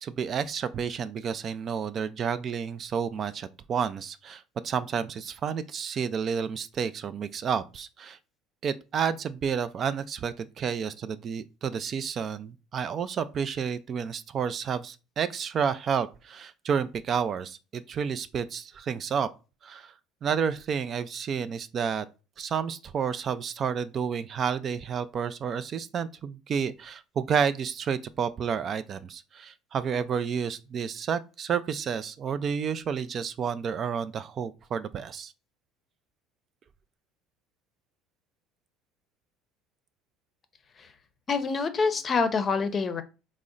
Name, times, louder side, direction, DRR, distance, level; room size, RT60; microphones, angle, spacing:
voice 1, 0.0-8.2 8.6-19.3 19.6-19.9 20.2-22.1 22.4-35.3, right 7 dB, 45° right, 0.3 m, -30 dB
voice 2, 41.3-43.0, left 4 dB, 35° left, 0.6 m, -26 dB
3.8 x 2.1 x 3.7 m
supercardioid pair, 95°, 0 cm